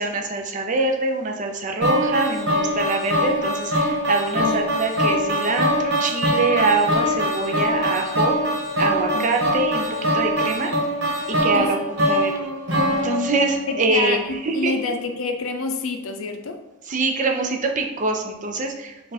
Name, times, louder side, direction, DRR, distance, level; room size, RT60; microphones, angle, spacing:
voice 1, 0.0-8.3 8.8-9.9 10.1-10.7 11.3-11.8 12.1-12.3 12.9-14.7 16.9-19.1, right 3 dB, 40° right, 3 dB, 0.5 m, -24 dB
sound 1, 1.8-14.0, equal, 65° right, 1.3 m, -23 dB
voice 2, 13.7-16.6, left 4 dB, 80° left, 6 dB, 0.5 m, -27 dB
4.6 x 2.4 x 4.0 m, 0.98 s
head